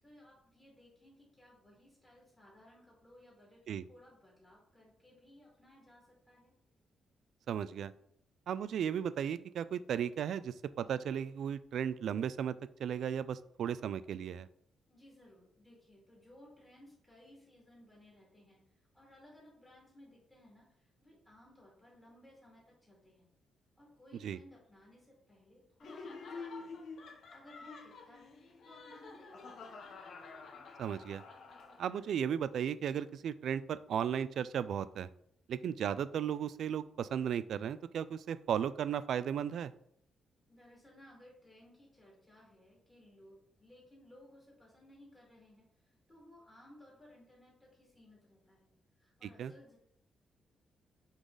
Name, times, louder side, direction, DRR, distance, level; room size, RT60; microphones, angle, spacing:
voice 1, 0.0-6.5 14.9-23.3 23.8-26.8 27.3-28.4 28.6-29.7 40.5-49.8, left 1 dB, 10° left, -5 dB, 2.4 m, -60 dB
voice 2, 7.5-7.9 8.5-12.5 12.8-14.5 24.2-24.4 30.8-31.2 31.8-35.1 35.5-39.7 49.4-49.5, right 8 dB, 65° right, 15 dB, 0.3 m, -35 dB
Laughter, 25.8-32.1, left 4 dB, 50° left, 1.0 m, -49 dB
8.0 x 4.0 x 3.9 m, 0.70 s
wide cardioid pair, 170°, 0 cm